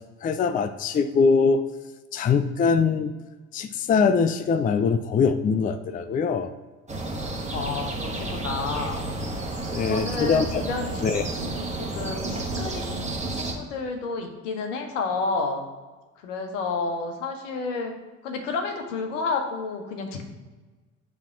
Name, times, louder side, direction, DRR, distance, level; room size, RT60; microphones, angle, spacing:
voice 1, 0.2-1.6 2.1-3.1 3.5-6.5 9.7-10.6 11.0-11.2, left 5 dB, 20° left, 11 dB, 0.4 m, -22 dB
sound 1, 6.9-13.5, right 2 dB, 20° right, 1.5 m, -31 dB
voice 2, 7.5-9.1 9.9-10.9 11.2-15.6 16.2-17.9 18.2-20.2, left 4 dB, 70° left, 4 dB, 1.1 m, -30 dB
7.0 x 3.5 x 5.7 m, 1.3 s
figure-of-eight pair, 50°, 38 cm